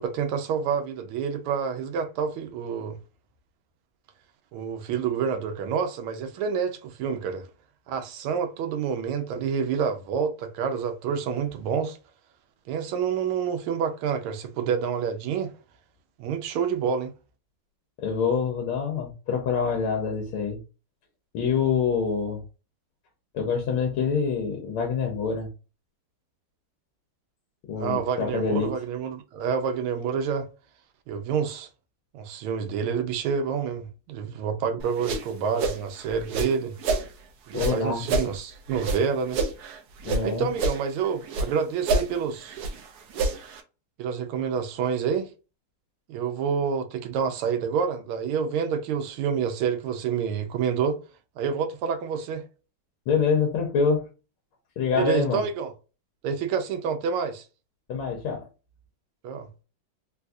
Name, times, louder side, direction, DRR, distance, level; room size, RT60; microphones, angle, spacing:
voice 1, 0.0-3.0 4.5-7.5 7.9-12.0 12.7-15.5 16.2-17.1 27.7-30.5 31.1-31.7 32.1-36.7 37.5-39.4 40.2-42.6 44.0-45.3 46.1-51.0 51.4-52.4 54.9-55.7 56.2-57.4 59.2-59.5, right 6 dB, 90° right, 1.5 m, -28 dB
voice 2, 18.0-20.6 21.3-22.4 23.3-25.5 27.7-28.7 37.5-38.0 40.0-40.5 53.1-54.1 54.8-55.4 57.9-58.4, left 5 dB, 85° left, 1.6 m, -26 dB
sound 1, 34.8-37.1 37.5-40.2 40.5-41.5 41.8-43.6, right 3 dB, 75° right, 0.9 m, -28 dB
4.0 x 2.3 x 2.5 m
omnidirectional pair, 2.3 m